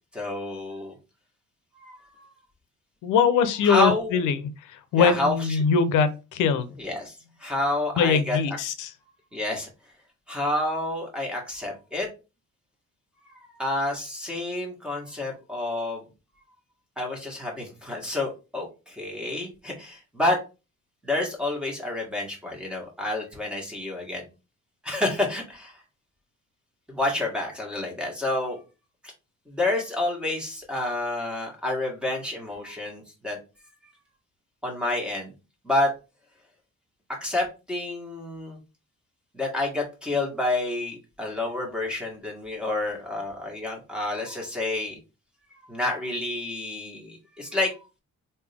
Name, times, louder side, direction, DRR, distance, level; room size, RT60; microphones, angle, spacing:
voice 1, 0.1-1.0 1.8-2.3 3.6-4.2 5.0-5.6 6.8-8.4 9.3-9.7 10.3-12.1 13.3-16.1 17.0-20.4 21.0-24.3 24.8-25.8 26.9-28.6 29.0-29.1 29.5-33.4 34.6-35.3 35.6-35.9 37.1-38.6 39.3-45.0 45.6-47.7, left 2 dB, 5° right, 0 dB, 1.6 m, -29 dB
voice 2, 3.0-6.7 8.0-8.9, left 6 dB, 85° left, 12 dB, 0.6 m, -22 dB
3.5 x 2.7 x 3.4 m, 0.29 s
cardioid pair, 90°, 30 cm